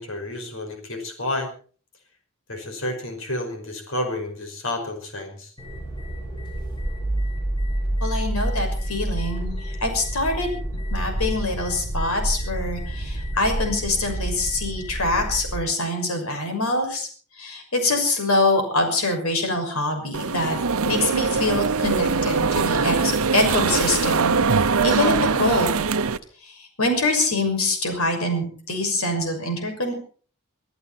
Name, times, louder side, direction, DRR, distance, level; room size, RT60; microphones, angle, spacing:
voice 1, 0.0-1.5 2.5-5.5, left 1 dB, 65° left, 5 dB, 5.5 m, -30 dB
sound 1, 5.6-15.6, right 1 dB, 20° left, 7.0 m, -28 dB
voice 2, 8.0-10.6 10.9-17.1 17.4-20.6 20.9-24.4 24.8-25.7 26.4-29.9, left 2 dB, 85° left, 5 dB, 6.2 m, -24 dB
sound 2, 20.1-26.2, right 4 dB, 80° right, 0.9 m, -22 dB
24.5 x 13.5 x 4.3 m, 0.42 s
head